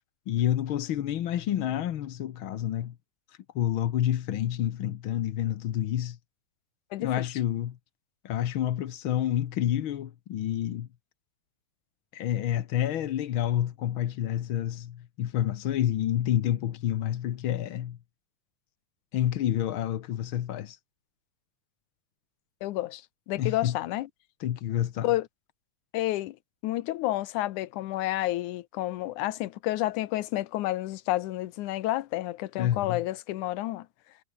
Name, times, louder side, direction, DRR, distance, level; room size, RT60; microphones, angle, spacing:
voice 1, 0.3-2.9 3.3-6.2 7.0-7.8 8.2-10.9 12.1-18.0 19.1-20.8 23.4-23.7 24.4-25.1 32.6-33.0, left 11 dB, 60° left, 1.4 m, -29 dB
voice 2, 6.9-7.3 22.6-24.1 25.0-25.3 25.9-26.4 26.6-33.9, left 16 dB, 80° left, 2.4 m, -30 dB
omnidirectional pair, 3.5 m